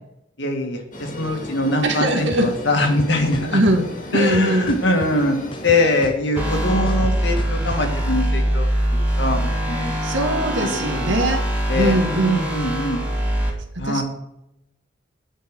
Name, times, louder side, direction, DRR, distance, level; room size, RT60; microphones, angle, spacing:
voice 1, 0.4-3.6 4.1-5.4 5.6-9.9 10.2-10.3 10.6-11.2 11.7-13.0 13.8-14.0, left 1 dB, 65° left, 3 dB, 2.1 m, -23 dB
sound 1, 0.9-6.1, left 1 dB, 40° left, 2.3 m, -35 dB
voice 2, 1.8-2.5 3.5-3.9 4.1-4.7 10.0-11.4 11.7-12.5 13.7-14.0, right 1 dB, 75° right, 4 dB, 1.9 m, -21 dB
sound 2, 2.3-2.4 2.8-3.8 4.2-5.2 5.5-7.8, left 2 dB, 25° left, 0.7 m, -34 dB
sound 3, 6.4-13.5, right 1 dB, 10° right, 2.4 m, -23 dB
9.6 x 5.7 x 8.0 m, 0.84 s
head